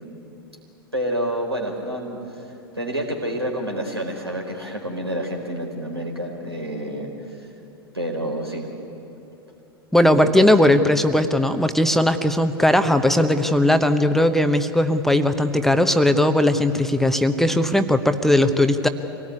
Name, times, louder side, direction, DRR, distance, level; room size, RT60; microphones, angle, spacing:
voice 1, 0.9-2.2 2.7-7.1 7.9-8.7 10.2-10.5, equal, 90° right, 0 dB, 4.3 m, -28 dB
voice 2, 9.9-18.9, left 1 dB, ahead, 9 dB, 0.9 m, -18 dB
25.0 x 18.5 x 9.8 m, 3.0 s
figure-of-eight pair, 95°, 13 cm